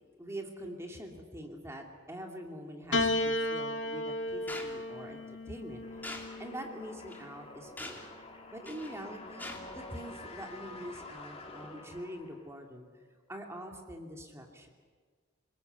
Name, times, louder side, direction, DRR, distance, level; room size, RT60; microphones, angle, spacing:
voice 1, 0.0-6.1 6.4-8.2 8.5-12.9 13.3-14.7, equal, 15° right, 2 dB, 2.6 m, -44 dB
Piano, 2.9-7.4 8.4-9.2, left 1 dB, 65° left, 1.9 m, -34 dB
sound 1, 4.5-4.7 6.0-6.3 7.1-7.2 7.8-8.1 8.7-8.9 9.4-9.6, left 2 dB, 10° left, 2.9 m, -42 dB
sound 2, 5.8-12.6, left 2 dB, 30° left, 2.7 m, -48 dB
28.0 x 20.0 x 8.2 m, 1.6 s
head